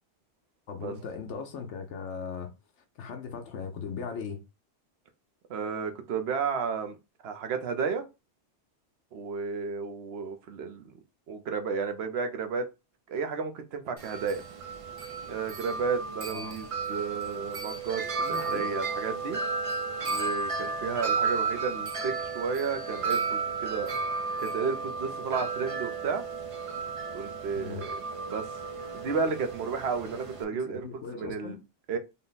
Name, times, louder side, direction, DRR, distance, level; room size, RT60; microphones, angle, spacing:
voice 1, 0.7-2.5 3.0-4.4 16.3-16.6 18.2-18.7 27.5-27.8 30.5-31.6, left 6 dB, 80° left, 1.0 m, -38 dB
voice 2, 5.5-7.0 7.2-8.0 9.1-10.9 11.3-12.7 13.1-14.4 15.3-19.4 20.1-24.0 24.4-26.2 27.1-28.0 28.3-28.5 28.9-31.6 31.9-32.0, right 5 dB, 65° right, 0.9 m, -32 dB
Wind chime, 14.0-30.4, right 4 dB, 40° right, 0.5 m, -33 dB
3.8 x 2.1 x 3.9 m
omnidirectional pair, 1.2 m